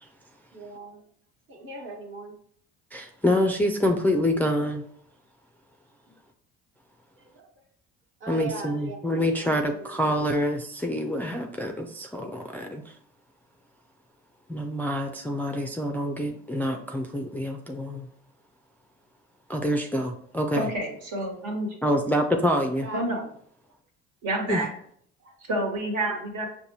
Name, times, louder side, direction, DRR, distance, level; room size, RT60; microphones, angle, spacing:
voice 1, 0.5-1.1 1.5-2.3 7.2-7.5 8.2-9.0 9.4-10.0 22.6-23.0 25.2-25.3 26.1-26.2, right 3 dB, 40° right, 1 dB, 1.2 m, -40 dB
voice 2, 2.9-4.8 8.3-13.0 14.5-18.1 19.5-20.7 21.8-22.9 24.5-24.6, equal, 5° left, 3 dB, 0.4 m, -26 dB
voice 3, 20.5-21.7 22.9-23.2 24.2-24.7 25.5-26.5, right 1 dB, 65° right, 0 dB, 1.5 m, -28 dB
5.2 x 2.6 x 2.8 m, 0.63 s
supercardioid pair, 70°, 31 cm